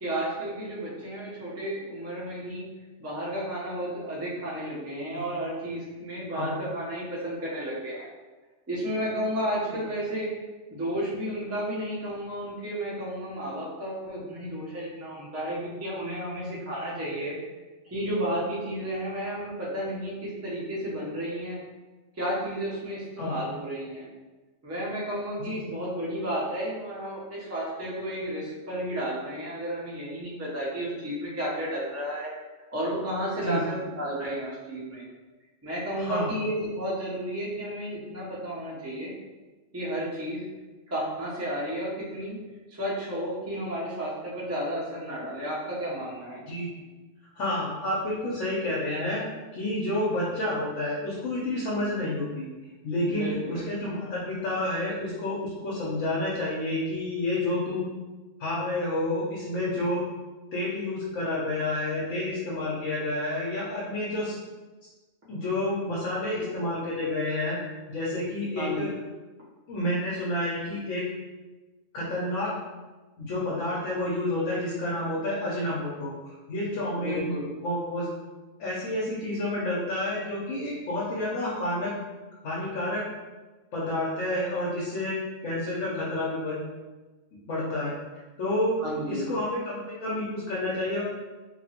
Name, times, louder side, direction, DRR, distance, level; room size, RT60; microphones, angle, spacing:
voice 1, 0.0-2.7 3.0-8.1 8.7-10.3 10.7-17.4 17.9-21.6 22.2-24.1 24.6-32.3 32.7-35.0 35.6-39.1 39.7-40.4 40.9-42.4 42.7-46.4 53.0-53.6 68.6-68.8 77.0-77.4 88.8-89.2, equal, 15° right, -7 dB, 0.5 m, -32 dB
voice 2, 36.0-36.3 46.5-46.7 47.4-49.2 49.5-52.5 52.8-57.8 58.4-60.0 60.5-64.4 65.3-67.6 67.9-68.9 69.7-71.0 71.9-72.5 73.2-76.1 76.5-77.3 77.6-78.1 78.6-81.9 82.4-83.0 83.7-85.2 85.4-86.6 87.5-87.9 88.4-88.8 89.1-91.0, left 1 dB, 75° left, -7 dB, 1.1 m, -29 dB
3.0 x 2.6 x 2.8 m, 1.2 s
omnidirectional pair, 1.3 m